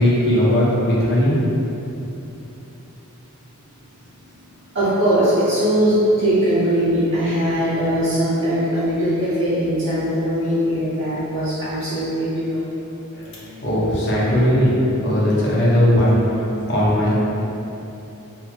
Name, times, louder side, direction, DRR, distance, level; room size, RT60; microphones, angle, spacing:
voice 1, 0.0-1.7 13.1-17.1, equal, 55° left, -7 dB, 0.8 m, -18 dB
voice 2, 4.7-12.6, equal, 65° right, -14 dB, 0.7 m, -20 dB
2.8 x 2.6 x 2.7 m, 2.9 s
head